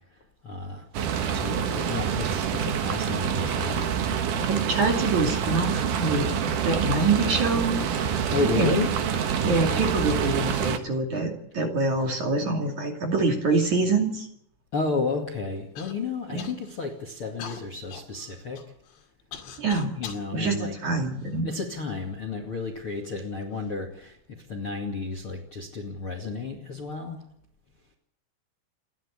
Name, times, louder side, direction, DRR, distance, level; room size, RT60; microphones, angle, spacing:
voice 1, 0.2-0.9 1.3-3.8 8.3-8.9 14.7-18.6 20.0-20.7 21.4-27.2, left 4 dB, 40° left, 5 dB, 2.1 m, -32 dB
sound 1, 0.9-10.8, right 7 dB, 60° right, 2.2 m, -27 dB
voice 2, 4.5-6.3 6.6-8.8 9.4-14.3 16.3-16.5 19.6-20.0 20.3-21.5, right 3 dB, 45° right, 3 dB, 3.3 m, -25 dB
Human voice / Cough, 15.8-15.9 16.4-16.9 17.4-20.3 21.0-21.8 22.6-22.7 23.4-23.7, left 8 dB, 65° left, 4.4 m, -42 dB
29.5 x 11.5 x 8.3 m, 0.73 s
omnidirectional pair, 5.7 m